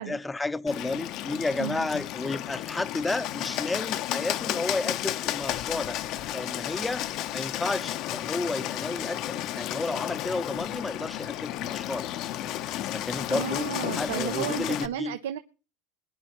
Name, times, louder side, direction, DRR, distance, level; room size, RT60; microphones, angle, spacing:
voice 1, 0.0-6.0 6.3-7.1 7.3-12.1 12.9-15.2, left 2 dB, 10° left, 0.7 m, -32 dB
Bird, 0.7-14.9, left 13 dB, 55° left, 0.8 m, -33 dB
voice 2, 13.3-15.4, right 10 dB, 85° right, 0.8 m, -33 dB
22.0 x 10.5 x 3.1 m
supercardioid pair, 105°, 0 cm